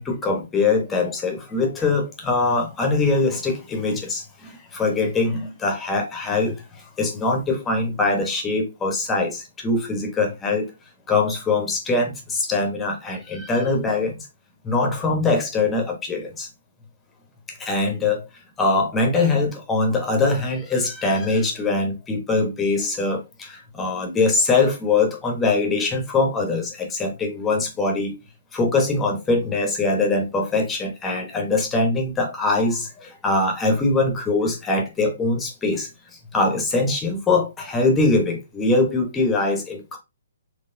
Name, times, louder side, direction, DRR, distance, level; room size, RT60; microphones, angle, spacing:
voice 1, 0.0-10.7 11.1-14.3 14.6-16.5 17.5-18.2 18.6-28.2 28.5-35.9 36.3-40.0, left 3 dB, 10° left, 1.0 m, -22 dB
4.1 x 3.1 x 2.6 m
hypercardioid pair, 155°, 0 cm